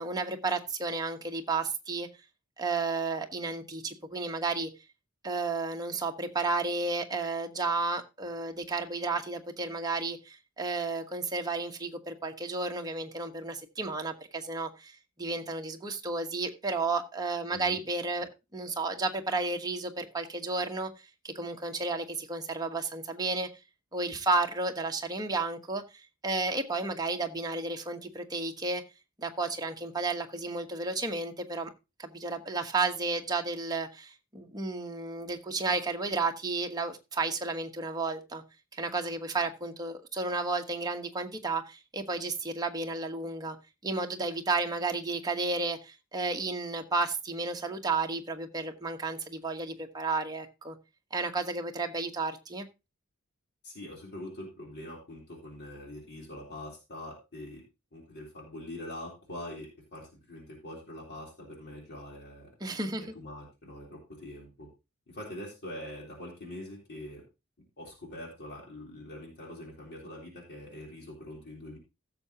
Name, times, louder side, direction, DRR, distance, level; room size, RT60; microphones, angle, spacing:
voice 1, 0.0-2.1 2.6-4.7 5.2-20.9 21.2-23.5 23.9-25.8 26.2-28.8 29.2-31.7 32.0-38.4 38.7-43.6 43.8-50.8 51.1-52.7 62.6-63.0, right 3 dB, 20° right, 1.2 m, -32 dB
voice 2, 17.5-17.8 53.6-57.6 57.9-62.5 63.1-64.7 65.1-67.2 67.8-71.8, left 1 dB, 50° left, 3.7 m, -44 dB
16.0 x 6.9 x 2.9 m
head